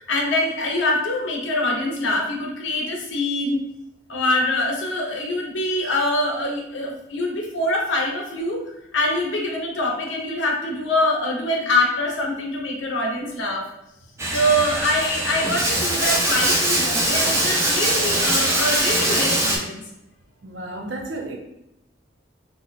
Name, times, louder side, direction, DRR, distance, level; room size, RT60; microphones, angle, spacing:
voice 1, 0.0-3.6 4.1-13.7 14.3-19.8, left 1 dB, 80° left, 1 dB, 0.7 m, -24 dB
Bathtub (filling or washing), 14.2-19.6, right 1 dB, 15° right, 0.4 m, -22 dB
voice 2, 20.4-21.4, right 2 dB, 70° right, 2 dB, 0.5 m, -32 dB
2.7 x 2.1 x 4.0 m, 0.84 s
head